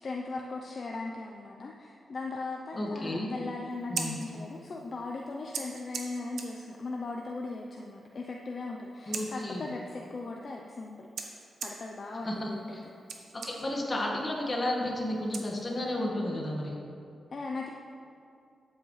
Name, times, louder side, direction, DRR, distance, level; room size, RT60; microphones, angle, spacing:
voice 1, 0.0-11.1 11.6-12.9 17.3-17.7, left 3 dB, 45° left, 0 dB, 0.6 m, -38 dB
voice 2, 2.7-3.3 3.9-4.2 9.1-9.7 12.2-12.5 13.3-16.8, left 1 dB, 30° left, -2 dB, 1.7 m, -32 dB
Scissors, 3.7-16.1, right 5 dB, 90° right, 0.9 m, -44 dB
12.5 x 7.9 x 3.2 m, 2.5 s
wide cardioid pair, 115°, 0 cm